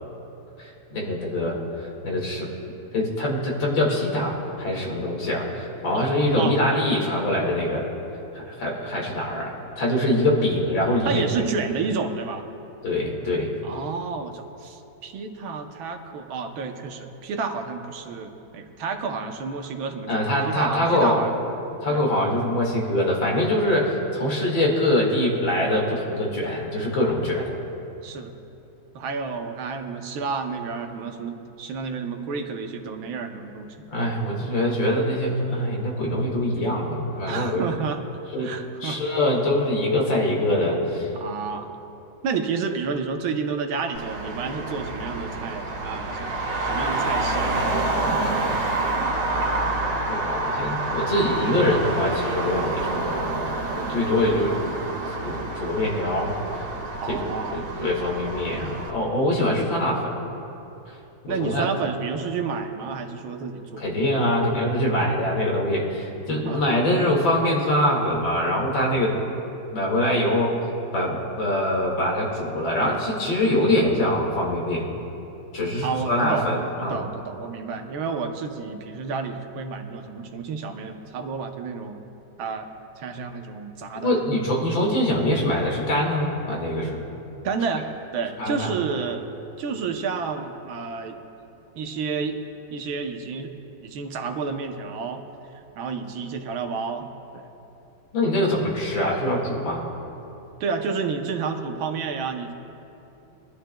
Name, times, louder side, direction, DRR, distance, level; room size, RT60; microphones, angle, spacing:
voice 1, 0.6-2.5 2.9-7.8 8.3-11.2 12.8-13.5 20.1-21.2 21.8-27.5 33.9-37.6 38.3-38.5 38.8-41.1 50.1-53.5 53.7-54.8 55.2-56.7 57.1-60.1 61.2-61.7 63.8-69.2 69.7-70.5 70.9-74.8 75.5-77.0 84.0-87.0 88.4-88.7 98.1-99.8, left 1 dB, 70° left, -2 dB, 2.7 m, -24 dB
voice 2, 11.0-12.4 13.6-21.3 21.9-22.0 23.7-23.9 27.3-27.4 28.0-28.3 28.9-33.9 37.3-38.0 38.4-39.0 41.1-41.7 42.2-46.3 46.6-47.5 57.0-57.6 61.3-63.9 66.4-66.6 75.8-82.0 82.4-82.7 83.0-84.4 87.4-87.9 88.1-89.2 89.6-91.2 91.8-92.4 92.7-93.5 93.8-95.2 95.5-97.1 97.3-97.5 100.6-102.5, right 5 dB, 80° right, 5 dB, 1.6 m, -30 dB
Traffic noise roadway noise, 43.9-58.9, right 2 dB, 60° right, 2.1 m, -28 dB
22.5 x 11.5 x 2.2 m, 2.9 s
omnidirectional pair, 2.2 m